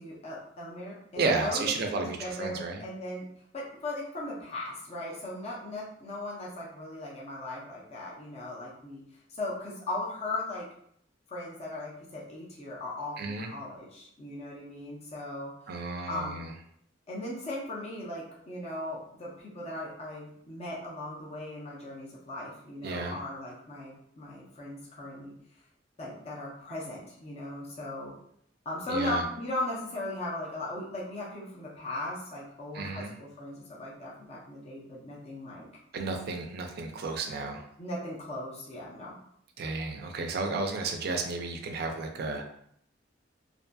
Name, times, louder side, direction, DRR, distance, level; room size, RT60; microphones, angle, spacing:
voice 1, 0.0-3.2 3.5-9.0 9.4-10.7 11.3-15.5 16.1-16.3 17.1-25.3 26.0-28.1 28.7-35.7 37.8-39.1, left 1 dB, 35° left, -5 dB, 0.6 m, -38 dB
voice 2, 1.2-2.8 13.2-13.5 15.7-16.5 22.8-23.2 28.9-29.2 32.7-33.2 35.9-37.7 39.6-42.6, right 3 dB, 55° right, 4 dB, 0.4 m, -32 dB
2.6 x 2.5 x 2.2 m, 0.70 s
head